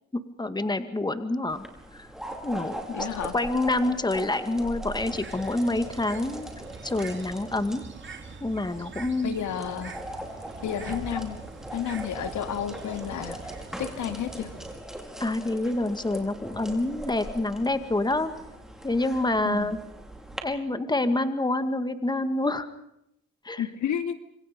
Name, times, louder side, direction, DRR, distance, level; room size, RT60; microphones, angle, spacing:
voice 1, 0.4-1.6 1.9-2.1 2.4-3.1 3.3-6.5 6.8-7.8 8.4-9.3 15.2-18.3 18.8-19.8 20.4-22.7 23.4-23.6, left 2 dB, 15° left, 10 dB, 2.1 m, -27 dB
sound 1, 1.5-20.4, right 1 dB, ahead, 5.4 m, -40 dB
voice 2, 2.9-3.3 9.2-10.0 10.6-11.4 11.7-13.5 13.8-14.5 19.4-19.7 23.6-24.1, left 9 dB, 75° left, 9 dB, 2.5 m, -31 dB
Bird, 5.0-14.8, right 5 dB, 40° right, 3.6 m, -44 dB
26.5 x 26.0 x 5.3 m, 0.79 s
cardioid pair, 90°, 30 cm